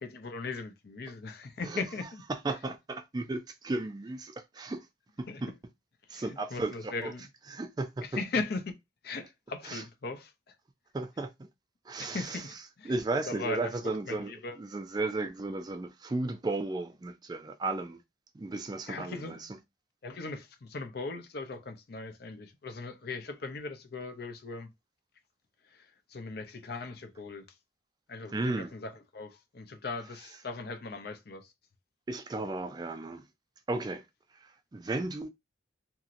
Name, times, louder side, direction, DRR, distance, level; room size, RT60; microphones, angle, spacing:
voice 1, 0.0-2.2 5.3-5.4 6.1-7.3 8.0-8.7 9.0-10.5 12.0-12.9 13.3-14.6 18.9-19.5 20.0-24.7 25.7-27.4 28.1-31.5, left 3 dB, 55° left, 0.5 m, -39 dB
voice 2, 2.3-4.9 5.2-5.5 6.1-7.1 7.5-8.1 9.7-9.8 10.9-11.3 11.9-12.4 12.9-14.3 14.6-18.0 18.3-19.5 28.3-28.7 32.1-33.2 33.7-34.0 34.4-35.3, right 2 dB, 20° right, 0.3 m, -34 dB
2.9 x 2.7 x 2.5 m
head